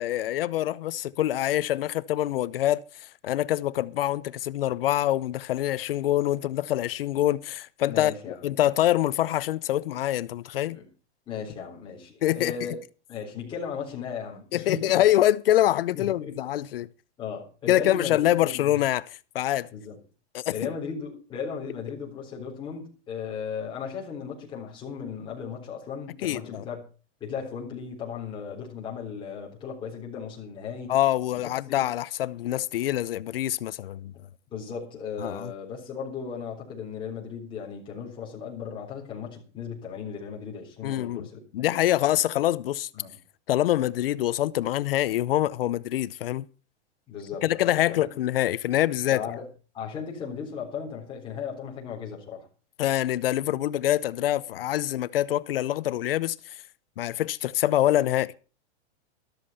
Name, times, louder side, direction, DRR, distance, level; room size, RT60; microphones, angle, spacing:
voice 1, 0.0-10.8 12.2-12.5 14.5-16.9 17.7-19.1 19.3-19.7 20.3-20.5 26.2-26.6 30.9-34.1 35.2-35.5 40.8-41.2 41.5-42.9 43.5-46.5 47.4-49.2 52.8-56.6 57.0-58.3, left 13 dB, 55° left, 0.7 m, -25 dB
voice 2, 7.9-8.4 10.7-10.9 11.3-12.7 13.1-15.0 15.9-16.3 17.2-18.7 19.7-20.0 20.5-26.8 27.2-30.9 31.4-31.9 34.5-41.7 42.9-43.1 47.1-47.9 49.1-49.5 49.7-52.5 54.5-54.6, left 6 dB, 15° left, 3.8 m, -36 dB
13.0 x 13.0 x 4.2 m
supercardioid pair, 175°, 34 cm